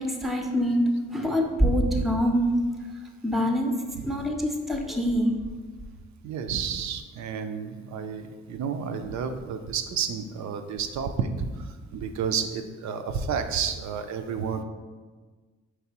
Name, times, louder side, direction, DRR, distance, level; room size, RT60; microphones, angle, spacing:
voice 1, 0.0-2.5 3.2-3.8 4.0-5.3, equal, ahead, 3 dB, 0.6 m, -24 dB
voice 2, 3.9-4.2 6.2-14.6, right 6 dB, 60° right, 7 dB, 0.5 m, -31 dB
4.7 x 3.2 x 2.9 m, 1.4 s
supercardioid pair, 55°, 32 cm